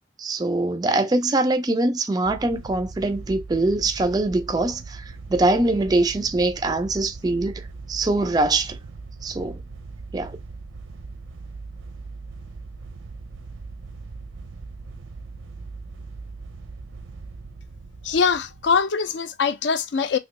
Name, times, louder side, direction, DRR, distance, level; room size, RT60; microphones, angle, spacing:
voice 1, 0.2-8.8 9.2-9.6 10.1-10.4, right 2 dB, 20° right, 0.3 m, -23 dB
sound 1, 2.2-18.8, right 3 dB, 85° right, 0.5 m, -39 dB
voice 2, 18.0-20.2, left 5 dB, 65° left, 0.4 m, -22 dB
3.0 x 2.7 x 3.0 m
head